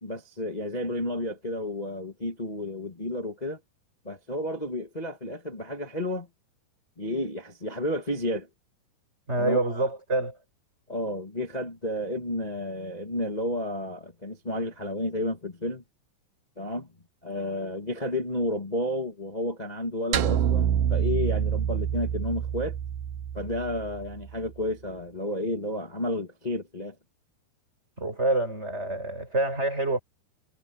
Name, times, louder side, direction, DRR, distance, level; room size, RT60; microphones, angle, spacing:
voice 1, 0.0-3.6 4.0-6.3 7.0-8.5 9.4-9.9 10.9-15.8 16.6-16.9 17.2-22.8 23.3-26.9, left 1 dB, 65° left, 0.4 m, -31 dB
voice 2, 9.3-10.4 28.0-30.0, right 2 dB, 15° right, 7.6 m, -27 dB
sound 1, 20.1-24.5, right 9 dB, 70° right, 2.5 m, -27 dB
omnidirectional pair, 4.7 m